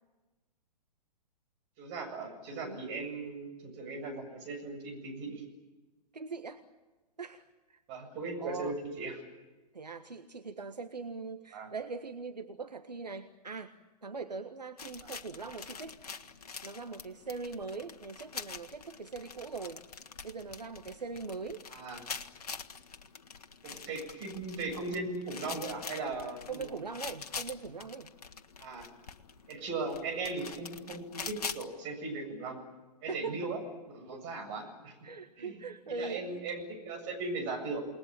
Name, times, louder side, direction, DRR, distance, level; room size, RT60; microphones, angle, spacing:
voice 1, 1.8-5.4 7.9-9.2 11.5-11.7 21.7-22.0 23.6-26.8 28.6-28.9 29.5-32.6 33.0-33.6 33.9-34.9 35.4-35.6 35.9-37.8, right 3 dB, 35° right, 4 dB, 7.6 m, -38 dB
voice 2, 6.1-6.6 7.2-7.8 8.4-8.8 9.7-13.7 14.0-16.0 16.6-19.8 20.2-21.6 26.5-28.1 33.1-33.4 34.1-34.3 35.0-36.4, right 4 dB, 80° right, 8 dB, 1.5 m, -41 dB
sound 1, 14.8-31.6, left 5 dB, 65° left, 1.6 m, -45 dB
29.0 x 20.0 x 8.9 m, 1.2 s
figure-of-eight pair, 115°, 21 cm